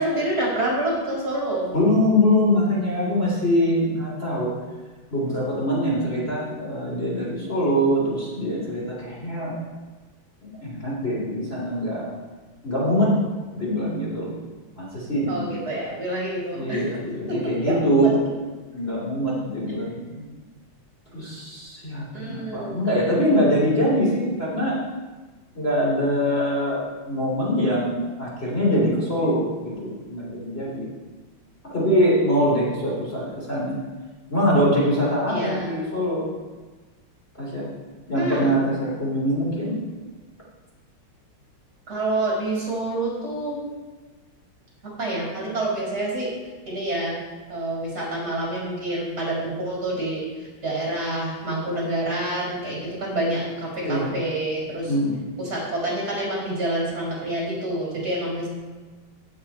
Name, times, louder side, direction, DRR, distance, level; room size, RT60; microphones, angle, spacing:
voice 1, 0.0-1.7 15.3-16.8 17.3-18.1 19.7-20.0 22.1-22.8 35.3-35.7 38.1-38.6 41.9-43.6 45.0-46.3 46.7-47.2 47.5-54.9 55.4-58.5, right 1 dB, 45° right, -4 dB, 5.6 m, -27 dB
voice 2, 1.7-4.5 5.1-9.6 10.4-12.1 12.6-13.1 13.5-14.4 14.8-15.6 16.5-18.2 18.7-20.2 21.1-24.8 25.6-30.8 31.7-33.8 34.3-36.3 37.4-37.7 38.1-39.8 53.8-54.1 54.9-55.2, equal, 25° left, -6 dB, 3.9 m, -23 dB
17.0 x 8.8 x 4.4 m, 1.3 s
omnidirectional pair, 2.3 m